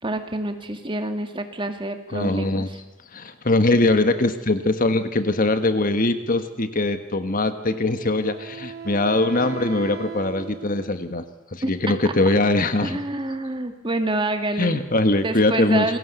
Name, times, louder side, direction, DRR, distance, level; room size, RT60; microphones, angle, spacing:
voice 1, 0.0-2.8 11.6-11.7 12.0-12.1 12.8-14.8 15.2-16.0, right 2 dB, 25° right, 6 dB, 2.2 m, -27 dB
voice 2, 2.1-2.7 3.1-13.0 14.6-15.9, left 2 dB, 40° left, 9 dB, 1.5 m, -22 dB
Wind instrument woodwind instrument, 7.7-11.3, right 5 dB, 45° right, 2.6 m, -38 dB
28.5 x 21.5 x 8.2 m, 1.0 s
head